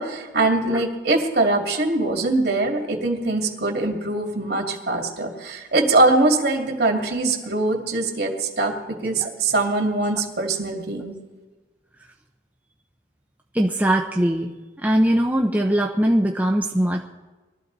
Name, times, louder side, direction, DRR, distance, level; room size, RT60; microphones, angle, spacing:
voice 1, 0.0-8.7 9.0-11.1, right 2 dB, 65° right, 1 dB, 2.5 m, -22 dB
voice 2, 13.5-14.5 14.8-17.0, right 1 dB, 10° right, -1 dB, 0.7 m, -20 dB
22.5 x 13.0 x 4.0 m, 1.2 s
head